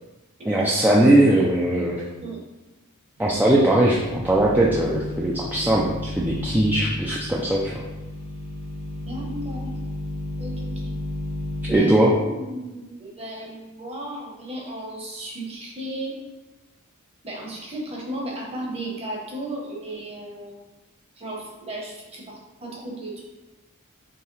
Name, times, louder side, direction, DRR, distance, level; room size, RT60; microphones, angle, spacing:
voice 1, 0.4-2.0 3.2-7.8 11.7-12.1, right 1 dB, 10° right, -4 dB, 0.4 m, -20 dB
sound 1, 3.2-11.8, left 1 dB, 80° left, 1.1 m, -33 dB
voice 2, 9.1-9.7 10.4-10.9 11.7-16.1 17.2-20.6 21.2-23.2, right 1 dB, 30° right, -2 dB, 1.0 m, -34 dB
4.6 x 3.2 x 3.2 m, 1.1 s
head